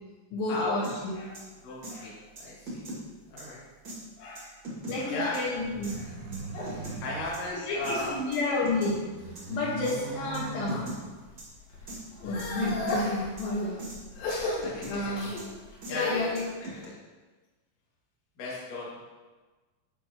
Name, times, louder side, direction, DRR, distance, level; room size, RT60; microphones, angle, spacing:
voice 1, 0.3-1.1 4.9-6.0 7.5-9.0 9.5-10.9 12.2-13.8 14.8-15.3 15.9-16.4, left 2 dB, 70° left, -8 dB, 3.2 m, -30 dB
sound 1, 0.8-1.0 1.3-1.4 1.8-1.9 2.3-3.0 3.4-3.5 3.8-4.0 4.3-5.0 5.3-5.4 5.8-6.0 6.3-7.0 7.3-7.4 7.8-7.9 8.3-9.0 9.3-9.4 9.8-10.0 10.3-10.4 10.7-11.0 11.4-11.5 11.9-12.0 12.4-13.0 13.4-13.5 13.8-14.0 14.3-14.9 15.4-15.5 15.8-15.9 16.3-16.8, right 1 dB, 55° right, 1.3 m, -40 dB
voice 2, 1.6-2.9 3.3-3.6 4.2-4.5 4.9-5.3 5.9-6.1 6.9-8.1 8.5-8.6 14.6-15.2 15.9-16.2 16.8-16.9 18.4-18.9, left 2 dB, 50° left, -5 dB, 2.8 m, -36 dB
sound 2, 5.6-8.2 8.6-9.2 9.8-10.8 11.2-16.4, left 2 dB, 85° left, 4.5 m, -37 dB
sound 3, 5.6-8.2 8.7-11.5, right 4 dB, 85° right, 2.3 m, -42 dB
10.5 x 6.7 x 2.9 m, 1.3 s
omnidirectional pair, 5.7 m